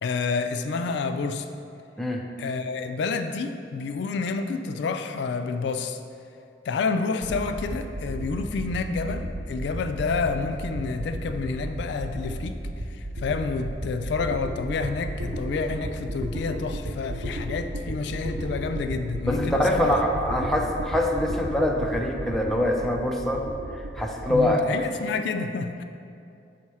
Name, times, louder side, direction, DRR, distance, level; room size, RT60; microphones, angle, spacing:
voice 1, 0.0-1.5 2.4-6.0 6.6-12.6 12.9-19.9 20.3-20.6 24.3-25.8, left 4 dB, 65° left, 8 dB, 0.3 m, -29 dB
sound 1, 7.2-24.4, right 1 dB, 75° right, 0.6 m, -34 dB
voice 2, 19.3-23.4 23.7-24.6, left 1 dB, ahead, 0 dB, 0.5 m, -24 dB
6.2 x 4.3 x 4.7 m, 2.5 s
head